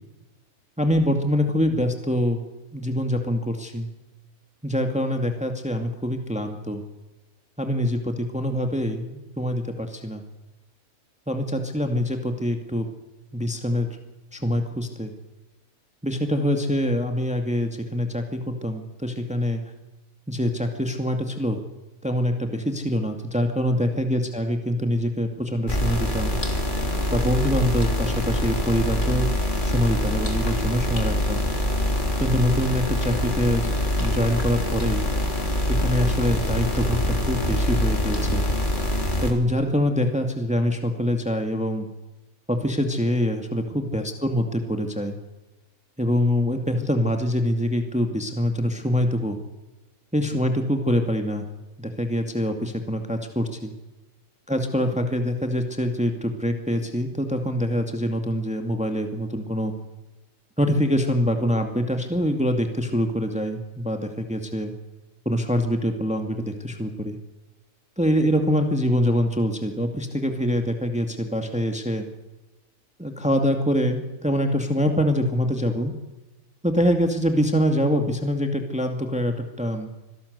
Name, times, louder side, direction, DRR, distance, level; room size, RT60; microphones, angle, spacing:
voice 1, 0.8-2.4 2.7-3.9 4.6-6.8 7.6-10.2 11.3-12.9 13.3-13.9 14.3-15.1 16.0-19.6 20.3-21.6 22.0-26.4 27.1-29.3 29.6-31.4 32.2-33.7 34.0-35.1 35.7-38.5 39.2-41.9 42.5-45.2 46.0-49.4 50.1-51.5 51.8-53.7 54.5-59.7 60.6-64.7 65.3-67.2 68.0-72.1 73.0-75.9 76.6-79.9, equal, 5° right, 5 dB, 2.1 m, -24 dB
sound 1, 25.7-39.3, left 1 dB, 35° left, 3.6 m, -24 dB
25.5 x 18.0 x 8.2 m, 1.0 s
omnidirectional pair, 1.4 m